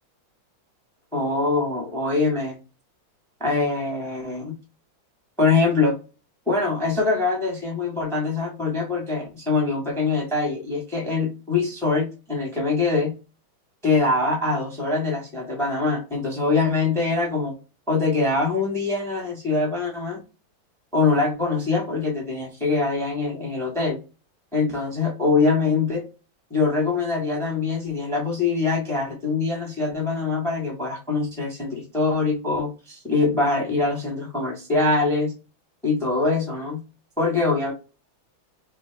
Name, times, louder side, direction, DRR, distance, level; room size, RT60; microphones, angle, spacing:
voice 1, 1.1-2.6 3.4-4.5 5.4-6.0 6.5-13.1 13.8-17.6 17.9-20.2 20.9-24.0 24.5-26.0 26.5-35.3 35.8-36.8 37.2-37.7, left 3 dB, ahead, 0 dB, 0.8 m, -23 dB
4.7 x 2.2 x 3.3 m, 0.31 s
omnidirectional pair, 2.2 m